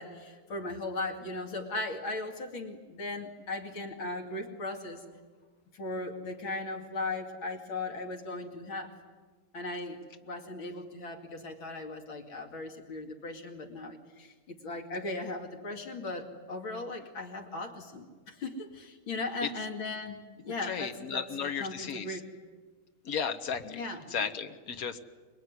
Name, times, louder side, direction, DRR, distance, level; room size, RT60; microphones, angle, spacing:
voice 1, 0.0-5.0 5.7-8.9 9.5-22.3 23.6-24.1, left 2 dB, 65° left, 3 dB, 3.2 m, -38 dB
voice 2, 20.6-22.1 23.1-23.8 24.1-25.0, left 7 dB, 45° left, 8 dB, 1.6 m, -34 dB
26.0 x 21.0 x 9.6 m, 1.4 s
omnidirectional pair, 2.4 m